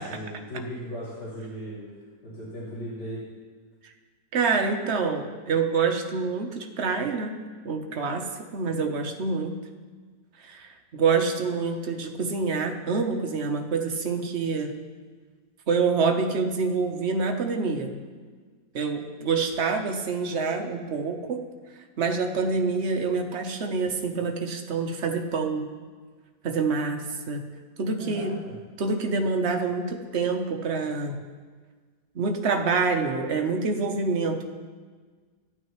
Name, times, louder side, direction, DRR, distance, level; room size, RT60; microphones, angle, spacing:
voice 1, 0.0-1.8 2.2-3.2 28.0-28.5, equal, 75° left, -11 dB, 3.7 m, -37 dB
voice 2, 4.3-7.4 7.6-9.6 10.4-14.7 15.7-17.9 18.7-21.4 22.0-25.7 26.4-27.4 27.8-28.4 28.8-31.2 32.1-34.5, right 4 dB, 50° right, 4 dB, 1.0 m, -26 dB
15.0 x 8.9 x 3.1 m, 1.5 s
omnidirectional pair, 1.8 m